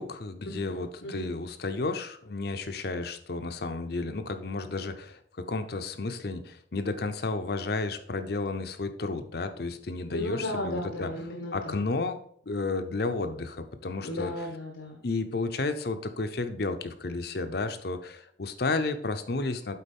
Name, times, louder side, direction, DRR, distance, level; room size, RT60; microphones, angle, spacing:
voice 1, 0.0-5.2 5.5-11.1 11.5-12.2 12.5-14.3 15.0-19.8, left 3 dB, 55° left, 9 dB, 0.7 m, -32 dB
voice 2, 0.6-1.4 10.1-11.8 14.0-15.0, left 1 dB, 80° left, 2 dB, 1.2 m, -35 dB
8.5 x 4.1 x 5.3 m, 0.63 s
head